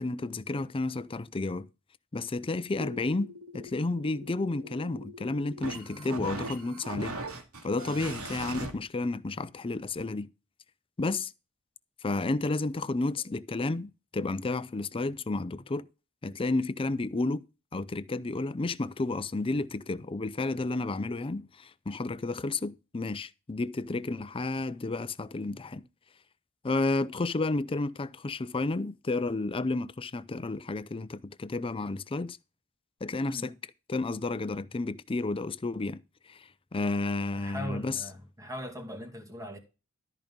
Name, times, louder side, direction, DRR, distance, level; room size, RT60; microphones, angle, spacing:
voice 1, 0.0-1.7 2.1-7.2 7.6-10.3 11.0-11.3 12.0-15.9 16.2-17.5 17.7-25.8 26.6-32.4 33.0-33.5 33.9-36.0 36.3-38.0, left 2 dB, 25° left, 0.5 m, -31 dB
sound 1, 2.8-8.7, right 2 dB, 85° right, 2.4 m, -40 dB
voice 2, 37.4-39.6, equal, 15° right, 2.1 m, -40 dB
13.0 x 5.2 x 5.3 m
head